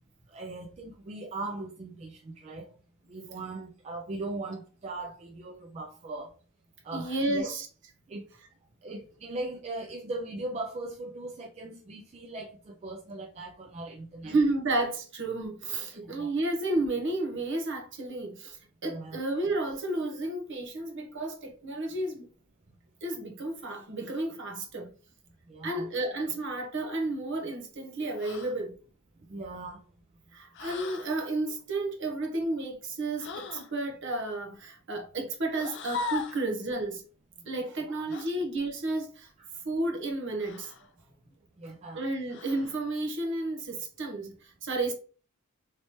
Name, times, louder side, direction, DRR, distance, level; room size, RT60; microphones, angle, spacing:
voice 1, 0.3-2.7 3.1-6.3 6.8-7.5 8.1-8.3 8.8-14.4 16.1-16.3 18.8-19.2 25.5-25.9 29.3-29.8 37.9-38.0 41.6-42.0, right 2 dB, 30° right, 0.3 m, -39 dB
voice 2, 6.9-7.7 14.2-22.3 23.0-24.9 25.6-28.7 30.3-37.0 37.5-39.3 39.6-40.7 41.9-44.9, right 2 dB, 55° right, 0.9 m, -32 dB
sound 1, 28.2-28.6 30.5-31.1 33.2-33.7 35.5-36.5 38.1-38.3 40.4-40.9 42.3-42.8, left 4 dB, 55° left, 0.4 m, -38 dB
3.2 x 2.9 x 2.9 m
head